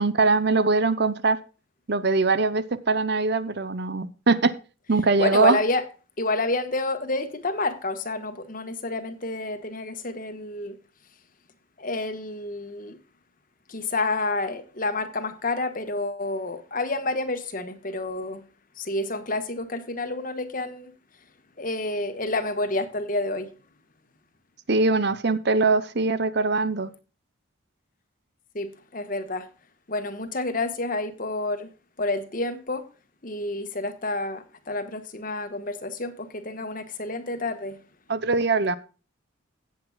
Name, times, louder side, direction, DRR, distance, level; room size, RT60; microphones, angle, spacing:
voice 1, 0.0-1.4 1.9-4.5 4.9-5.6 24.7-26.9 38.1-38.8, right 3 dB, 50° right, 0.8 m, -22 dB
voice 2, 5.2-5.8 6.2-10.8 11.8-13.0 13.7-18.4 18.8-20.9 21.6-23.5 28.5-29.5 29.9-31.7 32.0-32.8 33.2-37.8, left 2 dB, 40° left, 1.3 m, -29 dB
16.5 x 8.0 x 2.3 m
head